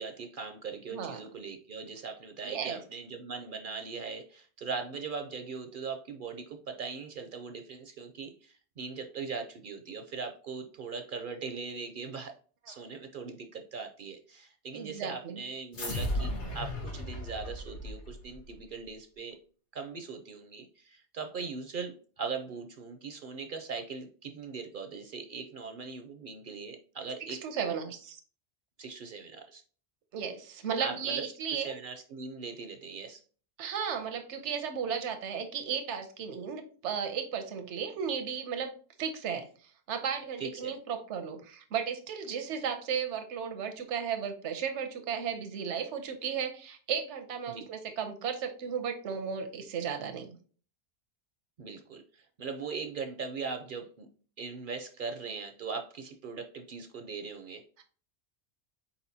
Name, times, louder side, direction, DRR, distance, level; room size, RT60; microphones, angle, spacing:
voice 1, 0.0-12.3 12.7-19.4 19.7-27.4 28.8-29.6 30.8-33.2 40.4-40.7 47.5-47.7 51.6-54.1 54.4-57.6, right 5 dB, 60° right, 6 dB, 0.6 m, -40 dB
voice 2, 2.4-2.8 14.7-15.4 27.3-28.2 30.1-31.7 33.6-38.7 39.0-50.3, right 7 dB, 85° right, 6 dB, 1.0 m, -35 dB
sound 1, 15.7-18.5, left 1 dB, 75° left, 1.5 m, -35 dB
4.5 x 4.2 x 2.7 m, 0.41 s
omnidirectional pair, 1.2 m